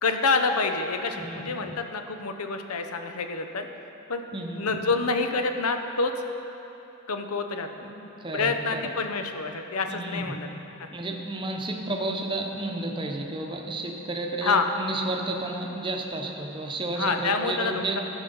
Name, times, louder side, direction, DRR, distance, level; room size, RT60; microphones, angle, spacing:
voice 1, 0.0-3.7 4.1-4.2 4.5-6.1 7.1-7.7 8.3-10.5 10.8-10.9 14.4-14.7 17.0-17.8, left 4 dB, 85° left, 6 dB, 0.8 m, -27 dB
voice 2, 1.1-1.5 4.3-4.7 7.8-7.9 8.2-8.8 9.9-10.2 10.9-18.0, right 2 dB, 25° right, 1 dB, 0.9 m, -32 dB
13.5 x 6.2 x 5.4 m, 3.0 s
head